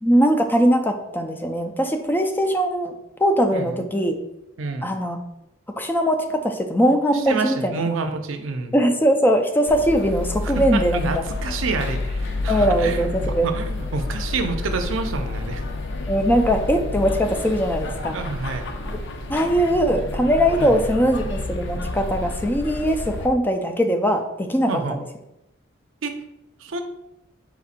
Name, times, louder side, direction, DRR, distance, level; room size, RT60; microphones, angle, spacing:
voice 1, 0.0-3.0 3.2-4.2 4.8-5.2 5.8-7.8 8.7-11.1 12.5-13.5 16.1-18.2 19.3-25.0, equal, 10° left, 5 dB, 0.3 m, -21 dB
voice 2, 7.1-8.8 10.4-15.6 18.1-18.7 20.6-20.7 24.7-25.0 26.0-26.1 26.6-26.8, right 4 dB, 80° right, 6 dB, 0.5 m, -28 dB
sound 1, 9.7-23.3, left 2 dB, 65° left, 0.5 m, -29 dB
4.4 x 4.1 x 2.4 m, 0.89 s
head